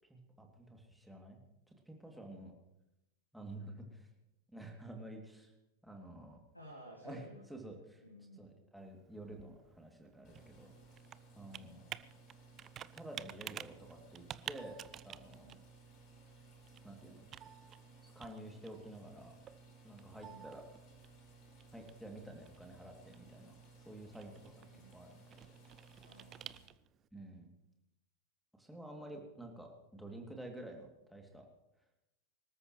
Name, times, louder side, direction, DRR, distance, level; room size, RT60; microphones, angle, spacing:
voice 1, 0.1-1.4 1.7-2.5 3.3-4.1 4.5-5.5 5.8-6.4 7.0-7.2 7.5-8.0 8.4-11.0 11.3-11.9 12.9-15.5 16.8-17.3 18.0-19.3 19.8-20.6 21.7-23.5 23.8-25.6 27.1-27.5 28.6-31.5, right 1 dB, ahead, 1 dB, 2.7 m, -50 dB
voice 2, 6.5-8.5 11.6-11.9 15.4-15.6 20.1-20.5 24.6-25.1 26.0-26.7, right 1 dB, 90° left, 3 dB, 1.7 m, -56 dB
Computer keyboard, 8.8-27.1, right 10 dB, 30° right, 0.5 m, -53 dB
sound 1, 10.2-26.7, right 3 dB, 35° left, 5.0 m, -59 dB
25.5 x 13.5 x 3.2 m, 0.91 s
figure-of-eight pair, 90°, 0 cm